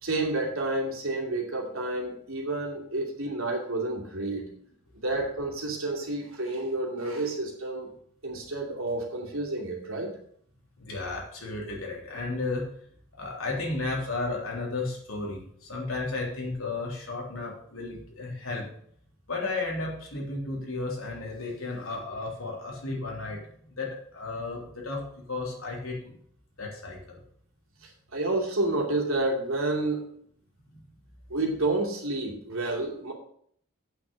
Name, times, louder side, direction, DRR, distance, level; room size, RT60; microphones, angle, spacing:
voice 1, 0.0-4.5 4.9-7.9 8.2-10.1 27.8-30.1 31.3-33.1, right 2 dB, 70° right, -1 dB, 2.6 m, -30 dB
voice 2, 10.8-12.6 13.1-18.7 19.3-23.4 23.7-26.2 26.6-27.2 30.7-30.8, left 3 dB, 70° left, -1 dB, 3.3 m, -33 dB
8.4 x 6.2 x 6.9 m, 0.64 s
head